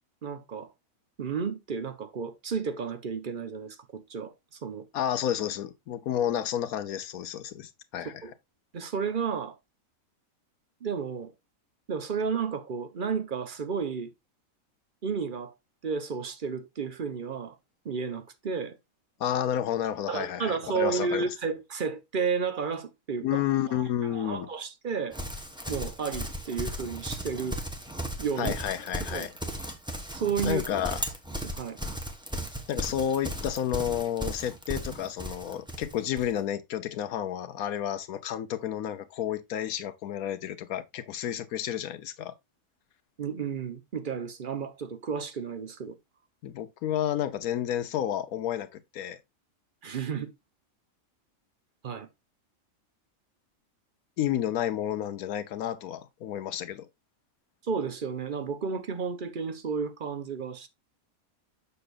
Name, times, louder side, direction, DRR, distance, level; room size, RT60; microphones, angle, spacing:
voice 1, 0.2-0.7 1.2-4.9 8.2-8.3 8.7-9.6 10.8-11.3 11.9-14.1 15.0-15.5 15.8-17.6 17.8-18.8 20.1-23.4 23.7-23.8 24.1-25.2 25.7-27.6 28.2-28.5 29.1-29.3 30.1-30.6 31.4-31.8 43.2-46.0 49.8-50.3 51.8-52.1 57.6-60.7, right 5 dB, 45° right, 0.8 m, -32 dB
voice 2, 4.9-8.2 19.2-21.2 23.2-24.5 28.4-29.3 30.4-31.0 32.7-42.3 46.4-49.2 54.2-56.9, left 10 dB, 85° left, 1.2 m, -31 dB
Livestock farm animals working animals, 25.1-36.3, equal, 5° right, 0.8 m, -36 dB
6.8 x 6.7 x 2.4 m
omnidirectional pair, 1.5 m